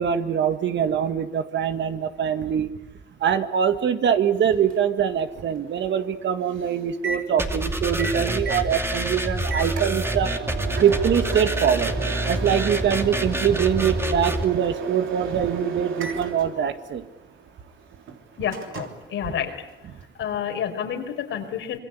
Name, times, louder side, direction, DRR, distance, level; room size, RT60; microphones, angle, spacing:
voice 1, 0.0-2.7 3.2-10.3 10.8-17.1, right 8 dB, 65° right, 8 dB, 2.0 m, -23 dB
Microwave oven, 4.4-20.1, right 5 dB, 85° right, 3.3 m, -35 dB
sound 1, 7.4-14.4, right 1 dB, 10° right, 2.7 m, -27 dB
voice 2, 18.4-19.5 20.2-21.8, left 9 dB, 80° left, 4 dB, 4.6 m, -29 dB
26.0 x 22.5 x 8.4 m, 1.0 s
cardioid pair, 90°, 20 cm